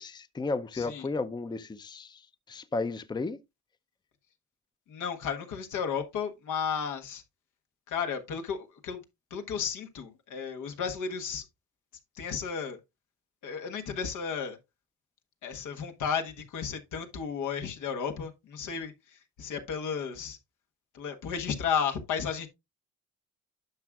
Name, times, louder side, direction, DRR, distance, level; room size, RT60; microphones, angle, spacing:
voice 1, 0.0-2.2 2.5-3.4, left 3 dB, 15° left, 0.5 m, -33 dB
voice 2, 0.7-1.1 4.9-7.2 7.9-9.0 9.3-11.4 12.1-12.8 13.4-14.6 15.4-20.4 20.9-22.5, left 6 dB, 80° left, 1.4 m, -33 dB
10.5 x 6.1 x 2.3 m
cardioid pair, 90°, 30 cm